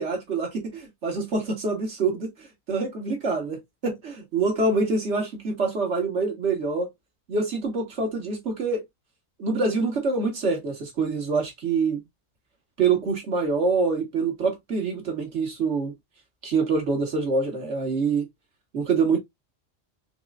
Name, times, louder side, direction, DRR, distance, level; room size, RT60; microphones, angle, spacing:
voice 1, 0.0-3.6 3.8-6.9 7.3-8.8 9.4-12.0 12.8-15.9 16.4-18.3 18.7-19.2, right 4 dB, 65° right, 1.9 m, -25 dB
4.6 x 3.1 x 2.4 m
omnidirectional pair, 1.3 m